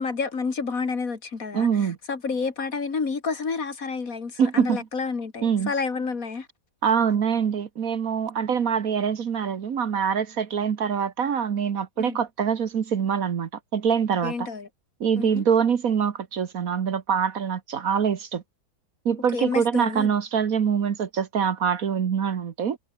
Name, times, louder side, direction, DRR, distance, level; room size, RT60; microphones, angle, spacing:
voice 1, 0.0-6.5 12.0-12.2 14.2-14.7 15.2-15.4 19.3-20.1, left 4 dB, 55° left, 2.6 m, -29 dB
voice 2, 1.5-2.0 4.4-4.8 5.4-5.7 6.8-14.5 15.0-18.4 19.0-22.8, right 7 dB, 60° right, 1.6 m, -24 dB
omnidirectional pair, 1.8 m